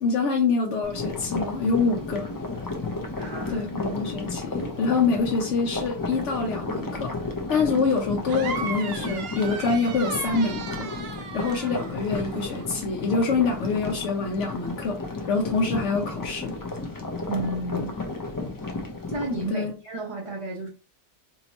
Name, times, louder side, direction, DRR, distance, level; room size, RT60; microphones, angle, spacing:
voice 1, 0.0-2.3 3.5-7.1 7.5-10.9 11.3-15.0 15.3-16.5 19.5-19.7, left 4 dB, 75° left, 1.0 m, -25 dB
sound 1, 0.8-19.5, left 2 dB, 25° left, 0.4 m, -33 dB
voice 2, 3.2-3.7 17.3-18.0 19.1-20.7, right 1 dB, 30° right, 0.8 m, -32 dB
sound 2, 8.3-12.7, right 5 dB, 65° right, 0.8 m, -36 dB
2.9 x 2.7 x 4.1 m
omnidirectional pair, 1.2 m